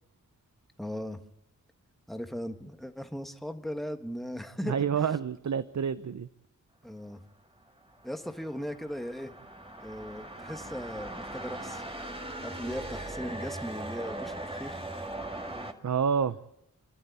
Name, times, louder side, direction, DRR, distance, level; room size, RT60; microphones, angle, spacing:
voice 1, 0.8-1.2 2.1-5.1 6.8-7.2 8.0-9.3 9.8-11.8 12.4-14.8, equal, ahead, 1.6 m, -38 dB
voice 2, 4.6-6.3 15.8-16.4, right 7 dB, 60° right, 0.7 m, -28 dB
sound 1, 7.8-15.7, right 1 dB, 15° right, 2.0 m, -40 dB
29.0 x 12.5 x 8.3 m
wide cardioid pair, 75°, 32 cm